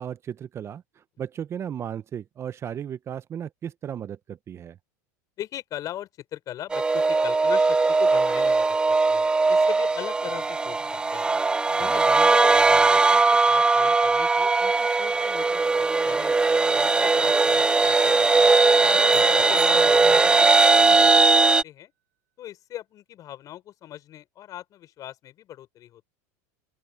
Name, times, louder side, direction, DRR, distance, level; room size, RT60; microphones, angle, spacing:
voice 1, 0.0-4.8 11.7-12.1, right 9 dB, 30° right, 0.8 m, -35 dB
voice 2, 5.4-11.3 11.8-16.4 16.7-21.9 22.4-26.1, left 12 dB, 45° left, 5.4 m, -40 dB
sound 1, 6.7-21.6, right 3 dB, 10° right, 0.3 m, -19 dB
sound 2, 19.1-20.5, right 13 dB, 85° right, 3.7 m, -45 dB
supercardioid pair, 105°, 9 cm